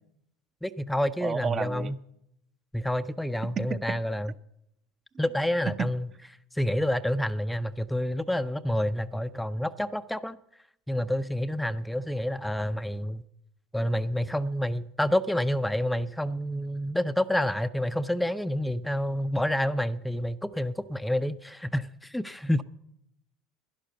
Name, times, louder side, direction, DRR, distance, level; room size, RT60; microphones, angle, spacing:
voice 1, 0.6-2.0 2.7-4.3 5.2-6.1 6.5-10.4 10.9-13.2 13.7-22.6, left 1 dB, 5° left, 10 dB, 0.5 m, -28 dB
voice 2, 1.2-1.9 5.8-5.9, right 6 dB, 35° right, 11 dB, 0.7 m, -30 dB
11.5 x 11.0 x 6.8 m, 0.76 s
hypercardioid pair, 95°, 0 cm